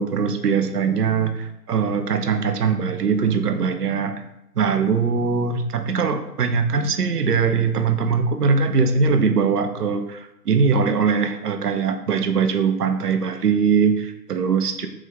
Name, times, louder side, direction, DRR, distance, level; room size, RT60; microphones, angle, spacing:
voice 1, 0.0-4.2 4.6-14.9, right 5 dB, 75° right, 8 dB, 0.5 m, -21 dB
3.5 x 2.2 x 3.4 m, 0.89 s
figure-of-eight pair, 145°, 46 cm